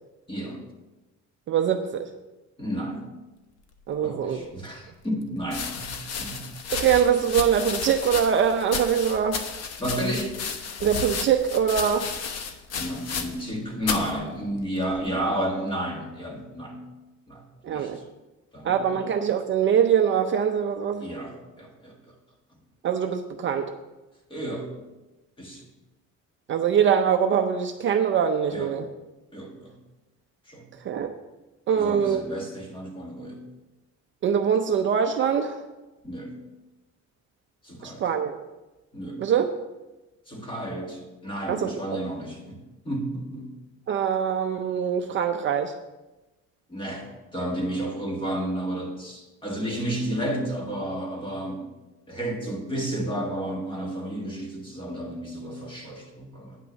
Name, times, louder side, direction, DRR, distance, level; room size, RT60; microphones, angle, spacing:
voice 1, 0.3-0.6 2.6-3.1 4.0-6.5 9.8-10.4 12.7-16.8 17.3-18.0 18.5-19.0 21.0-22.1 24.3-24.7 25.4-25.7 28.5-28.7 29.3-29.8 30.5-30.7 31.7-33.4 36.0-36.4 37.6-38.0 38.9-39.3 40.3-42.6 42.8-43.5 46.7-51.6 52.1-56.6, right 1 dB, 15° left, 0 dB, 1.7 m, -32 dB
voice 2, 1.5-2.1 3.9-4.4 6.7-9.4 10.8-12.1 17.6-18.0 18.6-21.1 22.8-23.7 26.5-28.9 30.8-31.1 31.7-32.2 34.2-35.6 37.8-38.4 39.2-39.5 41.5-41.7 43.9-45.7, right 8 dB, 40° right, 6 dB, 0.5 m, -23 dB
sound 1, 4.4-4.5 5.4-13.5 13.8-14.1 14.9-15.3, left 5 dB, 60° left, 1.0 m, -33 dB
9.4 x 5.9 x 6.3 m, 1.1 s
cardioid pair, 180°, 29 cm